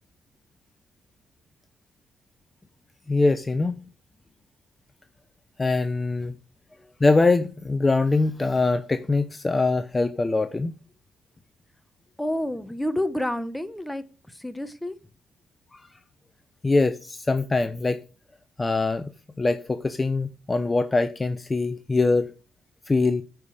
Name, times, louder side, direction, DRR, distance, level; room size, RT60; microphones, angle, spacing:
voice 1, 3.1-3.8 5.6-6.3 7.0-10.7 15.7-15.8 16.6-18.0 18.6-19.1 19.4-22.3 22.9-23.2, left 3 dB, 20° left, 0.7 m, -23 dB
voice 2, 12.2-15.0, left 1 dB, 5° left, 1.1 m, -29 dB
9.4 x 5.2 x 6.5 m
cardioid pair, 90°, 0 cm